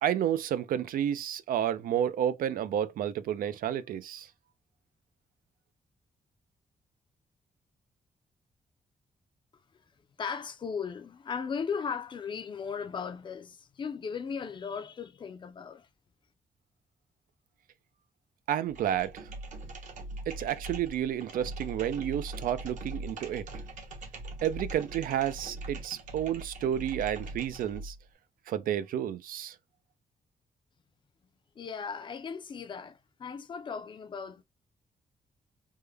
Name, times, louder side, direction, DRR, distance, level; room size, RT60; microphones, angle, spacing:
voice 1, 0.0-4.3 18.5-19.3 20.3-23.5 24.4-28.0 28.5-29.6, right 10 dB, 85° right, 0.4 m, -31 dB
voice 2, 10.2-15.9 31.6-34.4, left 6 dB, 35° left, 0.4 m, -37 dB
sound 1, 18.7-28.0, right 2 dB, 65° right, 0.9 m, -41 dB
3.5 x 2.1 x 3.3 m
wide cardioid pair, 170°, 14 cm